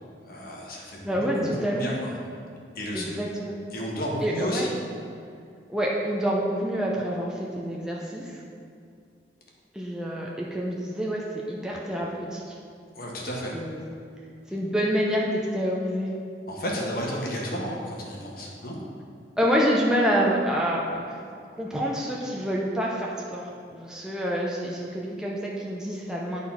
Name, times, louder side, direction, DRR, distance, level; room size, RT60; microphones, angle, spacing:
voice 1, 0.3-2.1 2.7-3.2 3.7-4.7 12.9-13.6 16.5-18.8, equal, 55° left, -2 dB, 1.4 m, -32 dB
voice 2, 1.0-1.9 2.9-3.6 4.2-4.7 5.7-8.3 9.7-12.4 13.5-13.8 14.5-16.1 19.4-21.1 21.6-23.4 23.7-26.4, equal, 5° right, -4 dB, 0.6 m, -27 dB
11.0 x 4.1 x 4.3 m, 2.4 s
head